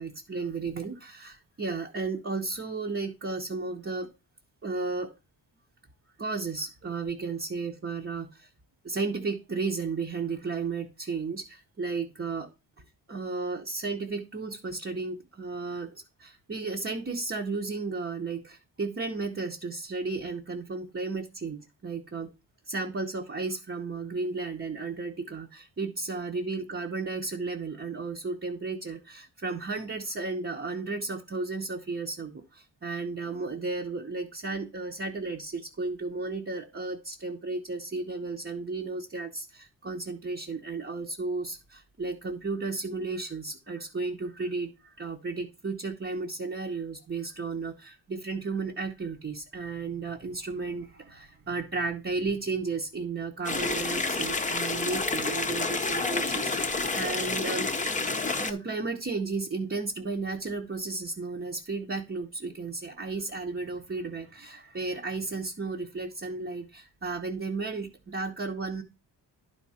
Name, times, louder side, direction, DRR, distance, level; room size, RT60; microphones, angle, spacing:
voice 1, 0.0-4.1 4.6-5.1 6.2-8.5 8.8-12.5 13.1-22.3 22.7-57.7 58.4-68.8, right 3 dB, 30° right, 1 dB, 1.0 m, -34 dB
sound 1, 53.4-58.5, left 3 dB, 15° left, 0.7 m, -29 dB
11.0 x 4.8 x 4.2 m, 0.27 s
wide cardioid pair, 110°, 44 cm